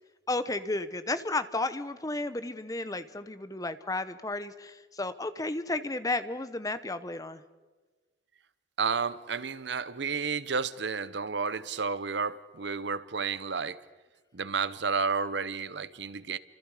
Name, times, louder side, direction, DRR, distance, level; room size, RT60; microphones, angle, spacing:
voice 1, 0.3-7.4, left 2 dB, 20° left, 0.9 m, -33 dB
voice 2, 8.8-13.8 14.3-16.4, right 5 dB, 65° right, 0.8 m, -31 dB
29.5 x 26.5 x 4.9 m
head